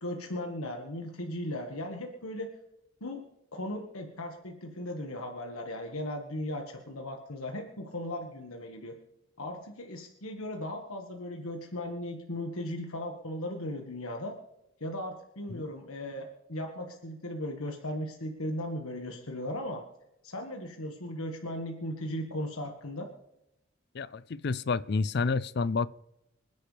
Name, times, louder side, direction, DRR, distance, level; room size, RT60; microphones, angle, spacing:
voice 1, 0.0-2.5 3.0-3.2 3.5-9.0 9.4-14.3 14.8-19.8 20.2-23.1, left 1 dB, 85° left, 1.6 m, -37 dB
voice 2, 23.9-25.9, left 4 dB, 50° left, 0.4 m, -29 dB
26.0 x 10.5 x 3.3 m
head